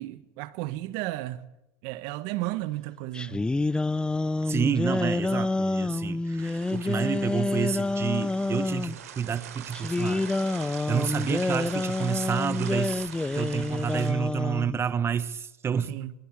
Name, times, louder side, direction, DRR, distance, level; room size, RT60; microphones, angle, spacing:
voice 1, 0.0-1.4 1.8-3.4 15.9-16.1, right 16 dB, 65° right, 1.6 m, -33 dB
sound 1, 3.1-8.9 9.7-14.8, left 2 dB, 10° left, 0.8 m, -28 dB
voice 2, 4.5-10.3 10.9-13.1 13.3-16.0, right 7 dB, 30° right, 1.4 m, -29 dB
sound 2, 6.4-14.1, right 10 dB, 85° right, 3.8 m, -43 dB
21.5 x 21.0 x 8.7 m
hypercardioid pair, 90°, 8 cm